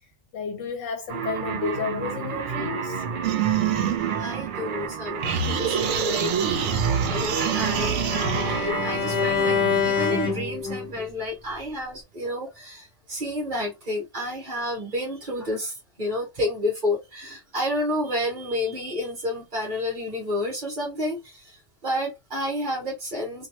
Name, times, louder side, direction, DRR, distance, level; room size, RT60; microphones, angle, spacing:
voice 1, 0.3-3.0, left 6 dB, 75° left, 0.9 m, -32 dB
sound 1, 1.1-11.2, right 6 dB, 55° right, 0.6 m, -31 dB
sound 2, 3.2-4.9 5.2-8.7, right 7 dB, 90° right, 1.0 m, -26 dB
voice 2, 4.1-6.7 7.1-23.5, left 1 dB, 40° right, 1.1 m, -30 dB
Bowed string instrument, 6.8-11.0, left 7 dB, 35° left, 0.9 m, -27 dB
3.0 x 2.6 x 2.7 m
omnidirectional pair, 1.3 m